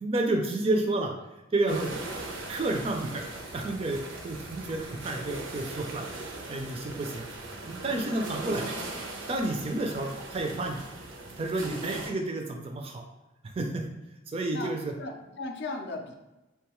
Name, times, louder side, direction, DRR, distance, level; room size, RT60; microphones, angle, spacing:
voice 1, 0.0-1.1 1.5-2.0 2.5-3.2 3.5-4.0 4.2-6.0 6.5-7.3 7.7-8.7 9.3-10.8 11.4-13.0 13.4-13.8 14.3-14.9, right 2 dB, 30° right, 3 dB, 0.3 m, -30 dB
sound 1, 1.7-12.1, right 2 dB, 85° right, 0.6 m, -39 dB
voice 2, 11.6-11.9 14.5-16.1, left 3 dB, 55° left, 3 dB, 0.4 m, -38 dB
3.6 x 2.3 x 2.9 m, 1.0 s
head